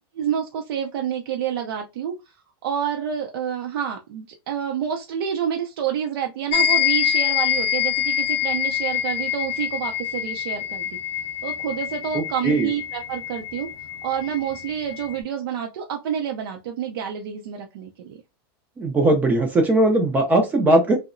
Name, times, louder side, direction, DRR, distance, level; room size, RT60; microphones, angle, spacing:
voice 1, 0.1-2.1 2.6-11.0 11.4-13.7 14.0-18.2, right 8 dB, 75° right, 0.5 m, -28 dB
sound 1, 6.5-15.2, left 11 dB, 45° left, 0.5 m, -26 dB
voice 2, 12.1-12.7 18.8-21.0, right 1 dB, 15° right, 0.3 m, -19 dB
2.7 x 2.0 x 2.5 m
supercardioid pair, 160°, 13 cm